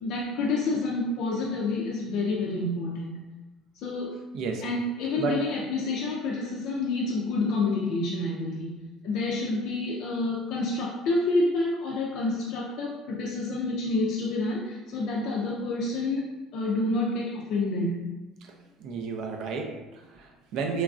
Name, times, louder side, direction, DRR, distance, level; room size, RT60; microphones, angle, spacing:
voice 1, 0.0-3.3 3.8-4.2 4.6-8.8 9.0-18.2, left 2 dB, 55° left, -3 dB, 0.3 m, -28 dB
voice 2, 4.3-4.6 5.2-5.4 18.4-20.8, right 5 dB, 55° right, 3 dB, 0.4 m, -32 dB
3.0 x 2.4 x 2.4 m, 1.1 s
cardioid pair, 165°, 0 cm